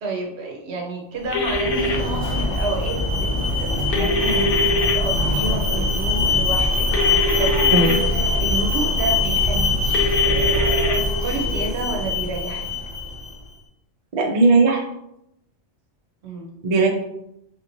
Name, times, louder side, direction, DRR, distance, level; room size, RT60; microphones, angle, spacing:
voice 1, 0.0-3.3 3.6-4.7 4.9-7.6 8.4-10.0 10.2-12.7 16.2-16.5, right 2 dB, 65° right, 1 dB, 0.9 m, -30 dB
sound 1, 1.3-1.9 3.9-4.9 6.9-7.9 9.9-11.0, left 1 dB, 60° left, 0.6 m, -23 dB
Alarm, 1.3-13.3, left 3 dB, 25° left, 0.9 m, -22 dB
voice 2, 7.7-8.1 14.1-14.8 16.6-16.9, right 3 dB, 50° right, 0 dB, 0.5 m, -18 dB
3.5 x 2.9 x 2.5 m, 0.82 s
omnidirectional pair, 1.3 m